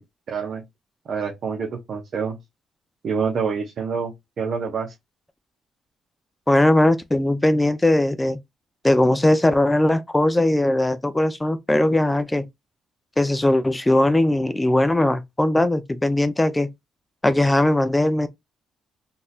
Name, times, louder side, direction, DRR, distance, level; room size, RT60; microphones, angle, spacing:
voice 1, 0.3-0.6 1.1-2.4 3.0-4.9, right 5 dB, 55° right, 0.8 m, -27 dB
voice 2, 6.5-8.4 8.8-12.5 13.2-16.7 17.2-18.3, left 1 dB, 15° left, 0.5 m, -19 dB
3.9 x 2.7 x 2.4 m
cardioid pair, 90°, 0 cm